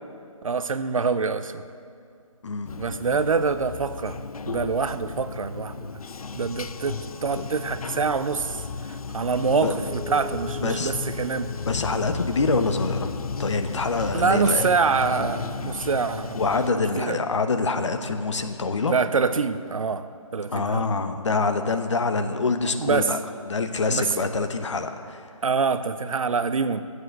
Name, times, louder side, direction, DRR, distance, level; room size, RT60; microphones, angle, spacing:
voice 1, 0.4-1.6 2.8-4.2 4.5-5.9 6.4-8.6 9.1-11.5 14.1-16.4 17.0-17.2 18.9-20.9 22.8-23.1 23.9-24.1 25.4-26.8, right 5 dB, 70° right, 12 dB, 0.7 m, -25 dB
Bathtub (filling or washing), 2.7-16.7, left 5 dB, 85° left, 0.5 m, -34 dB
Keyboard (musical), 9.8-12.8, equal, 5° right, 2.2 m, -42 dB
voice 2, 10.6-10.9 11.7-14.7 16.3-18.9 20.5-23.2 23.5-25.3, left 3 dB, 55° left, 7 dB, 1.0 m, -25 dB
12.0 x 8.0 x 7.9 m, 2.3 s
hypercardioid pair, 165°, 18 cm